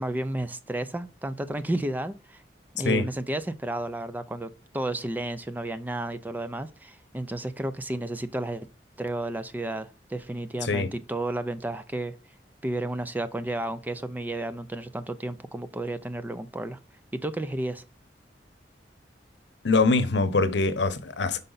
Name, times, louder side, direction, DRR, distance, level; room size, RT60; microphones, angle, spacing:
voice 1, 0.0-2.4 2.7-8.7 9.0-12.1 12.6-16.8 17.1-17.8, right 1 dB, 10° right, 0.4 m, -32 dB
voice 2, 19.6-21.4, left 3 dB, 75° left, 0.9 m, -23 dB
5.5 x 5.1 x 3.9 m
head